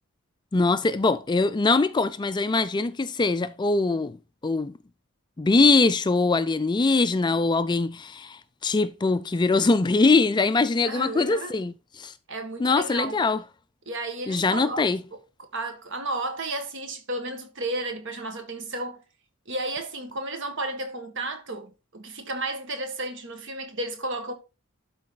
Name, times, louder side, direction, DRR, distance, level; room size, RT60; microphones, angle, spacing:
voice 1, 0.5-4.1 4.4-4.7 5.4-12.1 12.6-13.4 14.3-15.0, left 3 dB, 20° left, 0.4 m, -22 dB
voice 2, 10.8-11.6 12.3-13.2 13.9-14.8 15.5-19.0 19.5-24.3, right 2 dB, 60° right, 1.8 m, -33 dB
12.0 x 4.2 x 4.0 m
head